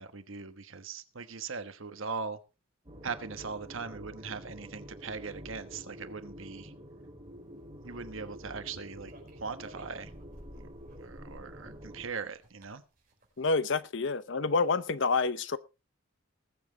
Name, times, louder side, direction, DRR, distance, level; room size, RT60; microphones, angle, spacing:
voice 1, 0.0-2.4 3.0-6.7 7.8-10.1 11.0-12.8, right 5 dB, 70° right, 1.3 m, -40 dB
sound 1, 2.8-12.1, equal, 25° right, 5.0 m, -48 dB
sound 2, 8.1-8.8 9.1-13.8, equal, 40° right, 5.0 m, -55 dB
voice 2, 13.4-15.6, left 4 dB, 60° left, 0.7 m, -28 dB
20.0 x 7.6 x 4.0 m
head